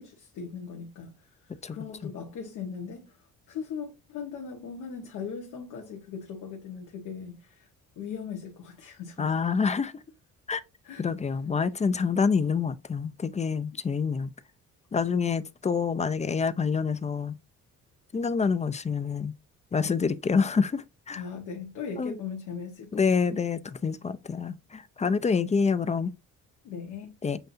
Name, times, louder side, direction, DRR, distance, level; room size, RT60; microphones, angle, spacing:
voice 1, 0.0-7.7 8.0-9.3 10.8-11.1 21.1-23.0 23.3-23.4 26.6-27.2, left 6 dB, 90° left, 1.2 m, -39 dB
voice 2, 9.2-9.9 10.5-10.6 11.0-14.3 14.9-17.3 18.1-19.3 19.7-21.2 22.0-22.2 22.9-26.1 27.2-27.4, left 5 dB, 25° left, 0.4 m, -27 dB
7.7 x 2.7 x 2.6 m
cardioid pair, 90°, 30 cm